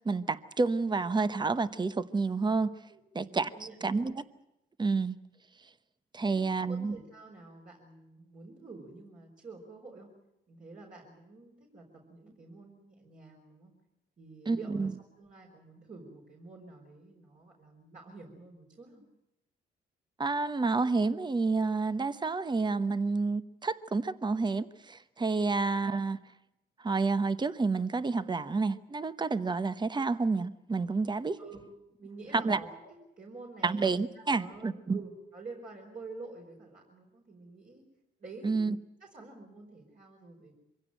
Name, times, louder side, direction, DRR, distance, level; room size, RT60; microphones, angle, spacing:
voice 1, 0.0-2.7 3.1-4.1 4.8-5.2 6.1-7.0 14.5-14.9 20.2-26.2 26.8-31.4 32.3-32.6 33.6-35.0 38.4-38.8, right 4 dB, 20° right, 1.0 m, -29 dB
voice 2, 2.9-4.1 6.2-10.1 10.5-13.7 14.2-19.0 31.4-31.6 32.0-37.8 38.2-38.6 39.0-40.5, right 3 dB, 45° right, 4.9 m, -49 dB
24.0 x 16.5 x 9.1 m
cardioid pair, 90°, 20 cm